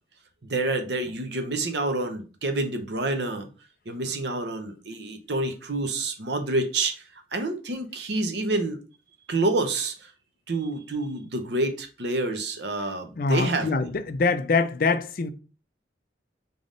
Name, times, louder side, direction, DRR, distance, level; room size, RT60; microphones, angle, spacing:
voice 1, 0.4-3.5 3.9-7.0 7.3-8.8 9.3-10.1 10.5-13.9, right 2 dB, 65° right, 0.8 m, -28 dB
voice 2, 13.2-15.3, left 4 dB, 50° left, 0.4 m, -24 dB
3.8 x 3.5 x 3.8 m
head